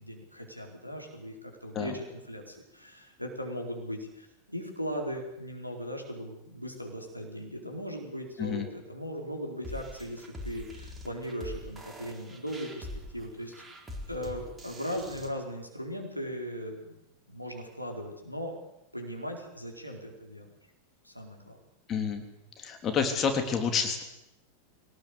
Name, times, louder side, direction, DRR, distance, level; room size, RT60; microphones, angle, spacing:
voice 1, 0.0-12.9 13.1-13.5 14.1-17.0 17.3-18.6 18.9-20.5 21.0-21.6, equal, 90° left, 1 dB, 4.4 m, -38 dB
sound 1, 9.6-15.3, left 1 dB, 10° right, 4.3 m, -43 dB
voice 2, 21.9-22.2 22.6-24.0, left 6 dB, 30° left, 6 dB, 3.3 m, -29 dB
23.0 x 18.5 x 8.4 m, 0.88 s
figure-of-eight pair, 90°, 0 cm